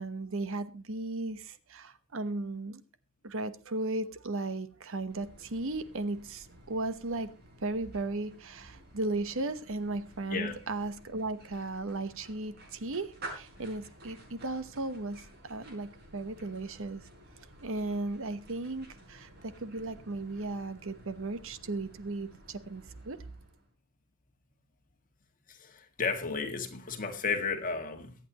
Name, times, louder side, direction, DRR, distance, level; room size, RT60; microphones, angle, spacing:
voice 1, 0.0-2.8 3.2-7.3 7.6-17.0 17.6-23.2, right 2 dB, 65° right, 1.1 m, -36 dB
sound 1, 5.1-23.7, right 1 dB, 50° right, 6.1 m, -52 dB
voice 2, 25.5-28.2, left 4 dB, 40° left, 1.9 m, -33 dB
23.0 x 8.7 x 3.0 m
head